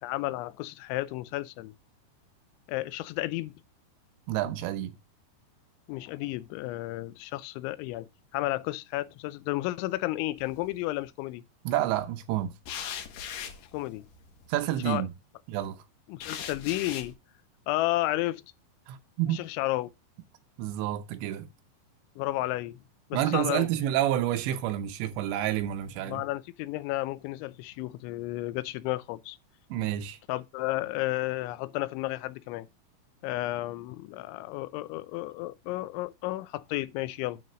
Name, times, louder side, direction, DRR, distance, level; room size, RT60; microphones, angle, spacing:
voice 1, 0.0-1.8 2.7-3.5 5.9-11.4 13.7-14.0 14.9-15.0 16.1-17.1 17.7-18.4 19.3-19.9 22.2-22.8 23.1-23.7 26.1-29.4 30.3-32.7 33.2-37.4, left 17 dB, 85° left, 3.0 m, -32 dB
voice 2, 4.3-5.0 11.6-12.5 14.5-15.1 15.5-15.8 18.9-19.5 20.6-21.5 23.1-26.2 29.7-30.2, right 12 dB, 80° right, 3.0 m, -29 dB
sound 1, 10.4-10.9 12.7-14.7 16.2-17.1, left 8 dB, 70° left, 2.2 m, -40 dB
9.3 x 4.0 x 6.1 m
omnidirectional pair, 5.3 m